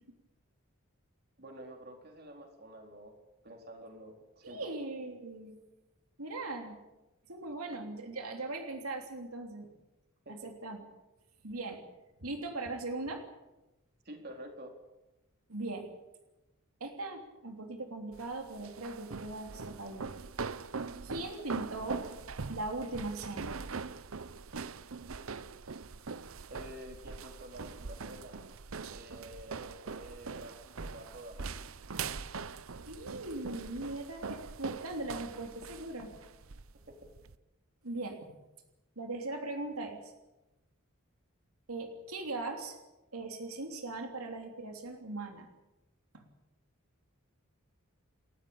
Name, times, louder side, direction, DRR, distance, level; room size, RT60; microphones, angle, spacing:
voice 1, 1.4-3.2 3.4-4.7 10.3-10.4 14.0-14.7 26.5-28.4 28.9-31.7 36.9-37.1, right 1 dB, 45° right, 3 dB, 4.2 m, -49 dB
voice 2, 4.4-5.6 6.2-6.8 7.3-9.7 10.3-10.8 11.4-11.8 12.2-13.2 15.5-15.9 16.8-20.1 21.0-22.1 22.5-23.6 32.9-36.1 37.8-38.3 39.0-40.1 41.7-42.8 43.1-45.5 46.1-46.2, right 2 dB, 90° right, 4 dB, 3.1 m, -39 dB
sound 1, 18.1-37.4, right 4 dB, 70° right, 0.8 m, -42 dB
29.5 x 14.0 x 8.8 m, 1.0 s
head